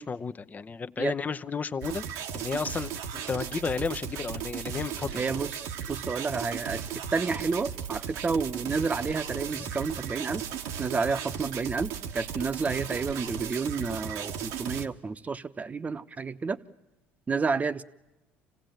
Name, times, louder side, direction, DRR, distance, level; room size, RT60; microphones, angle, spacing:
voice 1, 0.0-2.0 2.3-5.2, left 5 dB, 30° left, 0.8 m, -33 dB
sound 1, 1.8-14.9, right 8 dB, 75° right, 1.2 m, -36 dB
voice 2, 5.1-6.8 7.1-10.4 10.8-16.6 17.3-17.8, right 4 dB, 25° right, 1.0 m, -30 dB
27.0 x 16.5 x 9.2 m
supercardioid pair, 75°, 5 cm